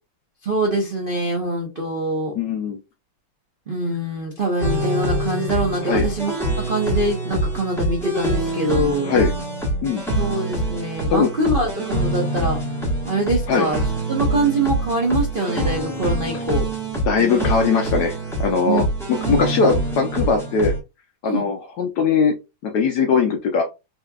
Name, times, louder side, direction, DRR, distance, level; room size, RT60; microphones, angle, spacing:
voice 1, 0.4-2.3 3.7-9.1 10.1-12.6 13.1-13.8 14.1-16.7 18.6-18.9 19.3-19.4 21.2-21.4, right 2 dB, 70° right, -1 dB, 0.5 m, -24 dB
voice 2, 2.3-2.8 5.8-6.1 9.0-9.3 9.8-10.0 11.1-11.3 13.5-13.7 17.1-18.8 19.3-20.7 21.2-22.3 22.6-23.6, left 5 dB, 70° left, 4 dB, 1.0 m, -20 dB
sound 1, 4.6-20.8, right 1 dB, ahead, 0.8 m, -25 dB
4.0 x 2.8 x 2.3 m, 0.26 s
omnidirectional pair, 2.3 m